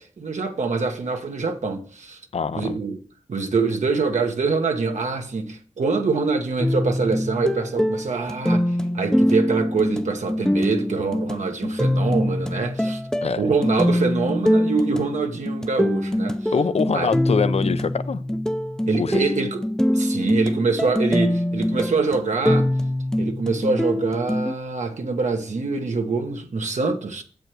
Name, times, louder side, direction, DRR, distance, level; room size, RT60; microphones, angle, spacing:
voice 1, 0.0-2.2 2.5-3.0 3.3-13.0 13.4-16.5 16.9-17.1 18.9-19.6 19.9-22.7 23.2-27.2, right 4 dB, 75° right, 1.2 m, -25 dB
voice 2, 2.3-2.8 13.2-13.4 16.5-18.2 18.9-19.2, left 5 dB, 60° left, 0.6 m, -24 dB
sound 1, 6.6-24.5, left 1 dB, 5° left, 0.6 m, -24 dB
7.7 x 5.0 x 6.2 m
wide cardioid pair, 90°, 12 cm